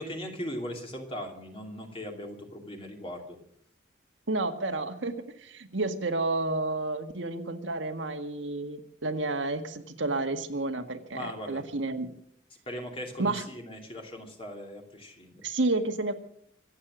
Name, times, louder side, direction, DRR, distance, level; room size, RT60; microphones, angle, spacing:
voice 1, 0.0-3.4 11.1-11.7 12.7-15.4, equal, 30° left, 2 dB, 2.7 m, -39 dB
voice 2, 4.3-12.1 13.2-13.4 15.4-16.1, right 2 dB, 85° right, 6 dB, 1.9 m, -30 dB
25.0 x 8.8 x 6.2 m, 0.70 s
head